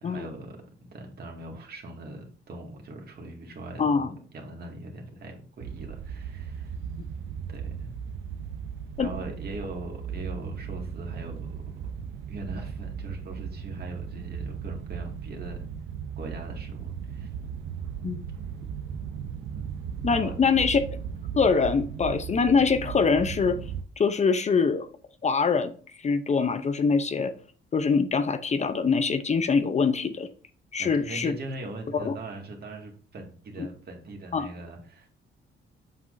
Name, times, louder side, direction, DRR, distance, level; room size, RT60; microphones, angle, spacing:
voice 1, 0.0-6.8 7.5-7.9 9.0-11.5 12.3-15.6 16.2-17.3 19.6-19.7 20.0-20.4 20.7-20.8 30.8-35.1, right 2 dB, 50° right, 2 dB, 2.0 m, -40 dB
voice 2, 3.8-4.1 9.0-9.1 18.0-18.3 20.0-21.0 21.3-23.6 24.0-24.9 25.2-25.7 26.0-27.3 27.7-30.3 30.7-31.4 31.9-32.1 33.6-33.7 34.3-34.5, left 5 dB, 35° left, 11 dB, 0.6 m, -24 dB
sound 1, 5.6-23.8, right 7 dB, 90° right, 0.7 m, -37 dB
7.5 x 6.0 x 2.6 m, 0.42 s
cardioid pair, 90°, 20 cm